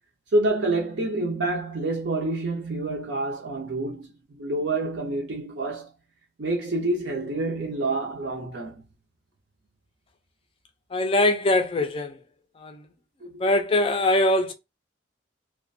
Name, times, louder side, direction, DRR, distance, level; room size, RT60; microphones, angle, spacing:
voice 1, 0.3-5.9 6.4-8.8 13.2-13.3, right 2 dB, 65° right, 0.6 m, -27 dB
voice 2, 10.9-12.2 12.6-12.8 13.4-14.5, left 1 dB, 30° left, 0.4 m, -22 dB
2.4 x 2.1 x 2.5 m
head